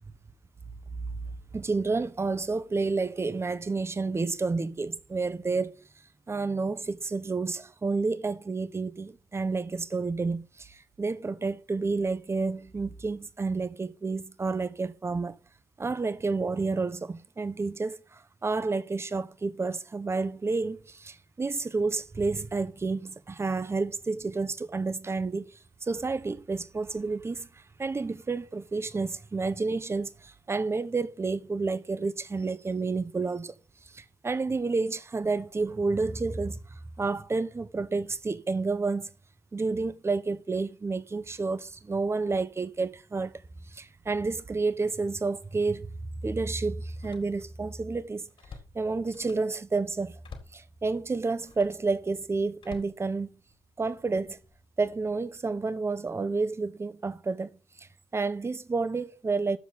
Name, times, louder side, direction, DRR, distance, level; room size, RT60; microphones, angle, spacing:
voice 1, 1.5-5.9 6.3-15.4 15.8-27.5 27.8-33.5 33.9-39.1 39.5-43.3 43.7-45.9 46.2-48.3 48.7-50.2 50.5-53.3 53.8-54.4 54.8-57.5 57.8-57.9 58.1-59.6, right 3 dB, 20° right, 0.8 m, -30 dB
Slam, 45.4-45.5 46.9-47.7 48.0-49.6 50.2-50.7 51.4-51.9 52.6-53.7 54.2-54.6, left 5 dB, 40° left, 2.1 m, -50 dB
12.0 x 7.1 x 4.0 m
figure-of-eight pair, 45°, 13 cm